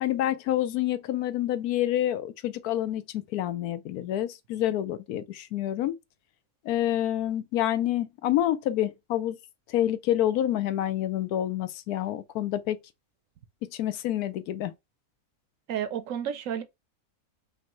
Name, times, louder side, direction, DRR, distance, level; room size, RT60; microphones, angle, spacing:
voice 1, 0.0-5.9 6.6-9.4 9.7-12.8 13.6-14.7, left 12 dB, 85° left, 1.1 m, -28 dB
voice 2, 15.7-16.6, right 9 dB, 70° right, 0.9 m, -31 dB
5.2 x 2.7 x 3.0 m
omnidirectional pair, 1.6 m